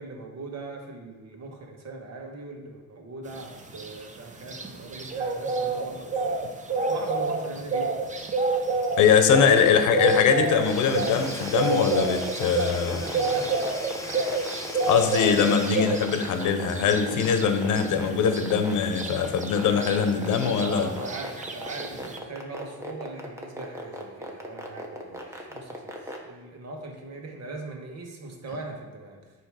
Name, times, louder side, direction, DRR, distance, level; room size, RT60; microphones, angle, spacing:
voice 1, 0.0-6.3 6.9-8.1 9.3-9.5 12.8-14.4 19.6-29.2, right 3 dB, 60° right, 2 dB, 1.4 m, -40 dB
sound 1, 3.3-22.2, right 3 dB, 25° right, 0.7 m, -29 dB
voice 2, 9.0-13.0 14.9-20.9, left 7 dB, 80° left, 8 dB, 0.8 m, -22 dB
Domestic sounds home sounds / Tools, 10.5-16.6, left 2 dB, 10° left, 0.9 m, -40 dB
sound 2, 10.5-26.2, equal, 10° right, 1.2 m, -37 dB
9.0 x 3.1 x 4.8 m, 1.3 s
cardioid pair, 90°, 30 cm